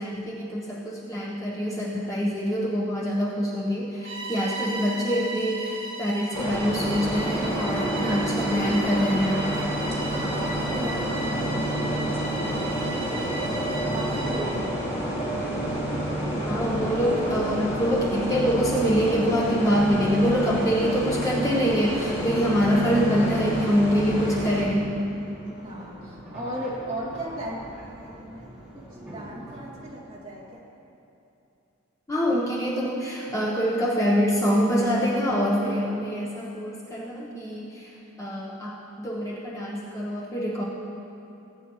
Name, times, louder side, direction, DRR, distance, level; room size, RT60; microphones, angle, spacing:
voice 1, 0.0-9.5 16.4-24.9 32.1-37.9 38.2-40.6, equal, 15° left, -5 dB, 1.0 m, -25 dB
Bowed string instrument, 4.0-14.6, right 2 dB, 60° right, 1.5 m, -36 dB
sound 1, 6.3-24.6, right 1 dB, 30° left, 2.4 m, -28 dB
voice 2, 10.1-13.5 13.9-15.1 25.6-27.8 28.0-28.5 28.7-30.6, right 1 dB, 25° right, -8 dB, 2.4 m, -36 dB
sound 2, 15.2-30.0, right 1 dB, 5° right, 2.6 m, -45 dB
18.5 x 9.1 x 3.1 m, 2.7 s
head